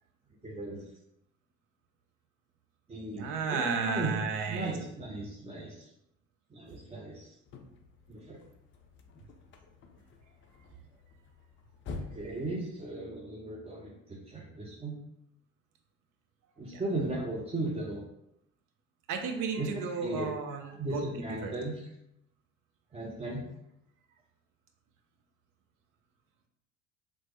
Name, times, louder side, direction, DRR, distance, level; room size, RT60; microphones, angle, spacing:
voice 1, 0.4-0.8 2.9-4.1 4.5-5.8 6.5-7.3 8.1-8.4 12.0-15.0 16.6-18.0 19.6-20.3 20.8-21.7 22.9-23.4, right 2 dB, 15° right, -5 dB, 0.6 m, -36 dB
voice 2, 3.1-4.7 16.7-16.8 19.1-21.5, right 5 dB, 55° right, 4 dB, 0.6 m, -33 dB
sound 1, 7.4-13.3, left 3 dB, 30° left, 0.4 m, -48 dB
3.0 x 2.1 x 3.0 m, 0.82 s
hypercardioid pair, 60°, 38 cm